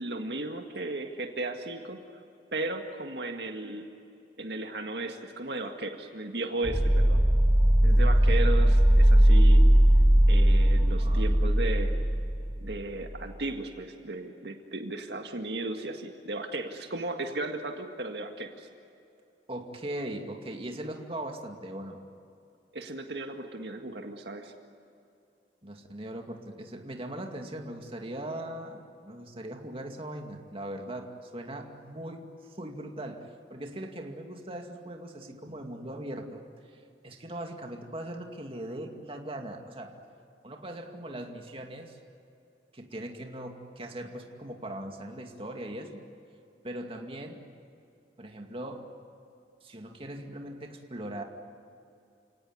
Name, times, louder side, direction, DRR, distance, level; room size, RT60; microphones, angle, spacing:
voice 1, 0.0-2.0 2.5-3.9 4.4-7.2 7.8-9.6 10.3-11.9 12.6-18.7 22.7-24.5, right 2 dB, 70° right, 4 dB, 2.0 m, -35 dB
sound 1, 6.6-13.2, right 1 dB, 10° right, 1.5 m, -20 dB
voice 2, 10.7-11.4 19.5-22.0 25.6-32.3 32.6-40.0 40.4-42.0 42.7-46.0 46.6-47.4 48.2-48.9 49.6-51.2, right 1 dB, 35° right, 3 dB, 2.3 m, -40 dB
30.0 x 18.5 x 9.8 m, 2.6 s
head